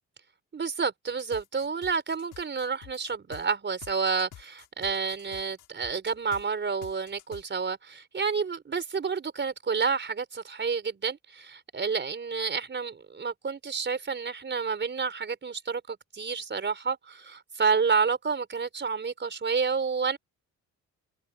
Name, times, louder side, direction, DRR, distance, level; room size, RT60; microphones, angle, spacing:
voice 1, 0.5-20.2, right 5 dB, 40° right, 4.5 m, -29 dB
sound 1, 1.1-3.4 3.8-6.4 6.8-7.4, left 13 dB, 85° left, 7.0 m, -49 dB
cardioid pair, 90°, 30 cm